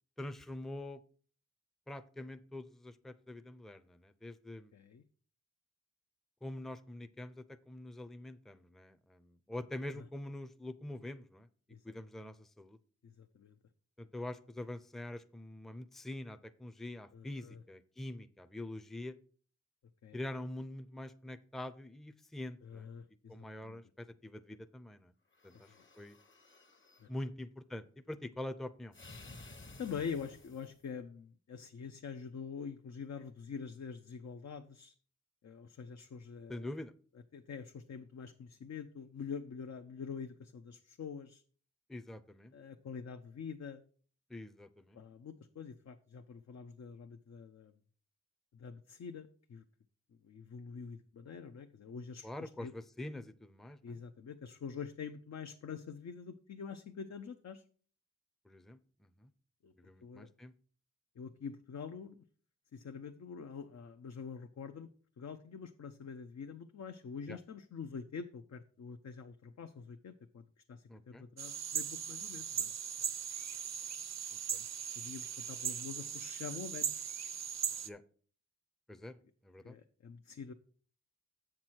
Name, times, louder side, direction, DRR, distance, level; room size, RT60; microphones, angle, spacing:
voice 1, 0.2-1.0 1.9-4.7 6.4-11.5 11.8-12.8 14.0-19.2 20.1-22.9 23.3-25.1 25.4-25.7 26.0-26.2 27.1-28.9 36.5-36.9 41.9-42.5 44.3-45.0 52.2-54.0 58.5-59.3 59.8-60.5 67.3-67.4 70.9-71.2 74.5-74.6 77.8-78.0 78.9-79.2 79.4-79.7, left 1 dB, ahead, 10 dB, 0.6 m, -45 dB
voice 2, 4.7-5.0 9.9-10.1 11.7-11.8 13.2-13.5 17.1-17.6 20.0-20.2 22.6-23.3 23.6-23.8 27.0-27.1 29.8-34.9 35.4-36.7 37.3-41.4 42.5-43.8 44.9-47.7 48.6-49.6 50.2-52.7 53.8-57.6 59.6-59.7 60.0-60.3 61.2-62.2 62.7-64.9 65.2-70.4 70.7-72.7 75.0-77.0 79.6-80.5, left 6 dB, 60° left, 6 dB, 0.6 m, -45 dB
sound 1, 25.3-27.1 28.9-30.9, left 2 dB, 40° left, 1.1 m, -54 dB
sound 2, 71.4-77.9, right 7 dB, 65° right, 0.6 m, -39 dB
7.6 x 6.0 x 4.5 m, 0.43 s
cardioid pair, 45°, 30 cm